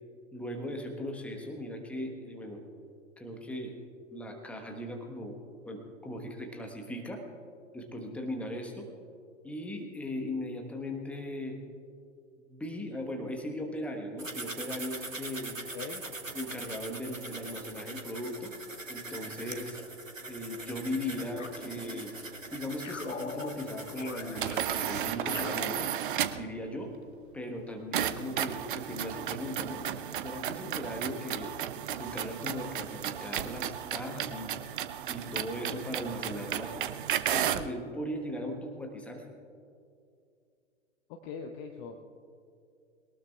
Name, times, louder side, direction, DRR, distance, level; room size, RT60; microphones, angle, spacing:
voice 1, 0.3-2.6 3.2-3.8 4.1-5.4 5.6-7.2 7.7-8.9 9.4-11.6 12.4-15.6 16.3-18.5 18.9-19.8 20.3-22.1 22.5-25.9 26.3-26.9 27.3-29.8 30.2-31.6 32.0-34.5 35.1-36.7 37.3-39.2, left 1 dB, 5° left, 2 dB, 1.3 m, -38 dB
sound 1, 14.2-25.0, right 2 dB, 90° right, 1.2 m, -43 dB
sound 2, 21.4-22.3 22.8-26.5, left 5 dB, 75° left, 1.1 m, -43 dB
sound 3, 24.3-26.5 27.9-37.7, right 10 dB, 45° right, 0.6 m, -34 dB
voice 2, 41.1-42.0, left 5 dB, 25° left, 5 dB, 0.8 m, -41 dB
21.5 x 19.0 x 2.4 m, 2.4 s
figure-of-eight pair, 110°, 38 cm